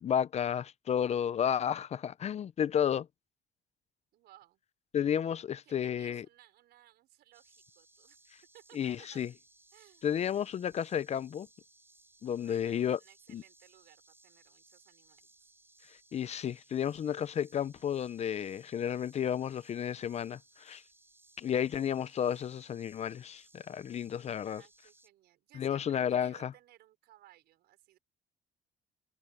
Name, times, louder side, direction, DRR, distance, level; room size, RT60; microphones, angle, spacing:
voice 1, 0.0-3.1 4.9-6.3 8.7-9.3 10.0-11.5 12.2-13.0 13.3-13.4 16.1-20.8 21.4-24.6 25.6-26.5, left 9 dB, 40° left, 0.5 m, -32 dB
voice 2, 4.1-4.6 5.6-8.2 8.5-9.3 9.7-10.2 12.3-15.3 24.4-28.0, right 14 dB, 75° right, 5.3 m, -61 dB
sound 1, 7.3-25.1, right 2 dB, 15° right, 7.1 m, -63 dB
cardioid pair, 110°, 17 cm